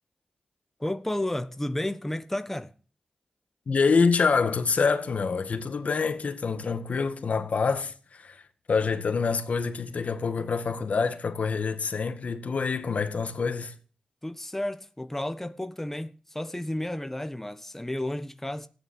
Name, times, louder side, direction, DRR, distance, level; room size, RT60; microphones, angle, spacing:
voice 1, 0.8-2.7 14.2-18.7, left 1 dB, 10° left, 1.3 m, -32 dB
voice 2, 3.7-8.4 8.7-13.7, left 5 dB, 70° left, 2.1 m, -26 dB
14.5 x 10.5 x 8.8 m
cardioid pair, 50°, 2 cm